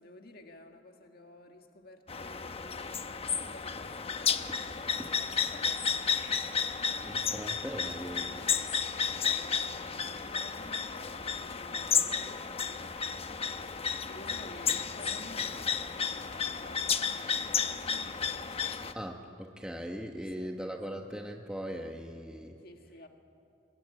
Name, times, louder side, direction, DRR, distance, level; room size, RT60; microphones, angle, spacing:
voice 1, 0.0-6.2 9.0-13.3 14.0-17.4 17.9-18.2 20.1-20.5 22.6-23.1, left 2 dB, 55° left, 4 dB, 1.8 m, -52 dB
sound 1, 2.1-18.9, left 6 dB, 35° left, 1.0 m, -32 dB
voice 2, 7.0-8.7 14.6-14.7 18.9-22.6, equal, 5° right, 2 dB, 1.1 m, -40 dB
27.0 x 22.5 x 9.8 m, 2.6 s
head